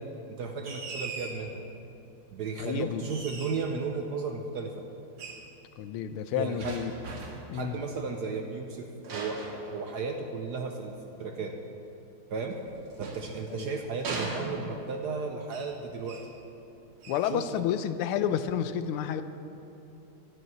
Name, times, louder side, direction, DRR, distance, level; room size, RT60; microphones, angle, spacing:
voice 1, 0.3-1.6 2.3-4.8 6.3-6.8 7.5-9.4 9.7-11.5 12.3-12.6 13.0-16.2 17.3-17.4, right 4 dB, 65° right, 3 dB, 1.1 m, -34 dB
sound 1, 0.6-1.5 3.1-3.8 5.2-5.5 6.6-7.5 9.0-10.3 12.5-13.6 14.0-14.9 15.5-15.8 16.0-16.4 17.0-17.3, right 3 dB, 80° right, 2.5 m, -39 dB
voice 2, 2.6-3.0 5.8-6.9 7.5-7.8 13.5-13.7 17.1-19.2, left 9 dB, 90° left, 11 dB, 1.5 m, -30 dB
12.5 x 6.3 x 9.1 m, 2.9 s
omnidirectional pair, 2.4 m